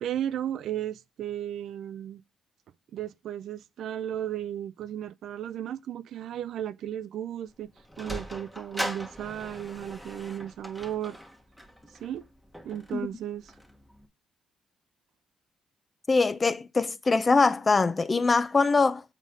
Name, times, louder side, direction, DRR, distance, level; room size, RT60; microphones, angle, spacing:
voice 1, 0.0-2.2 2.9-7.7 8.0-11.2 12.0-12.3 12.6-13.5, right 11 dB, 75° right, 0.4 m, -34 dB
Sliding door, 7.5-14.1, equal, ahead, 1.3 m, -40 dB
voice 2, 16.1-19.0, left 4 dB, 30° left, 0.7 m, -23 dB
7.4 x 4.1 x 4.9 m
cardioid pair, 90°, 0 cm